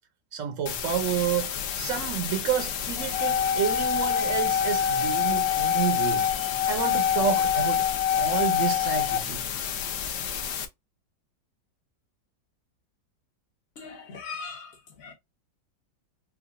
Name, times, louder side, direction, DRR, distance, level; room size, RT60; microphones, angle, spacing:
voice 1, 0.3-6.3 6.7-9.5, right 9 dB, 65° right, 0.8 m, -30 dB
sound 1, 0.7-10.7, left 8 dB, 70° left, 1.3 m, -32 dB
sound 2, 3.0-9.2, left 9 dB, 90° left, 1.3 m, -25 dB
voice 2, 13.8-15.1, left 5 dB, 50° left, 0.8 m, -40 dB
4.6 x 2.3 x 2.4 m
omnidirectional pair, 1.9 m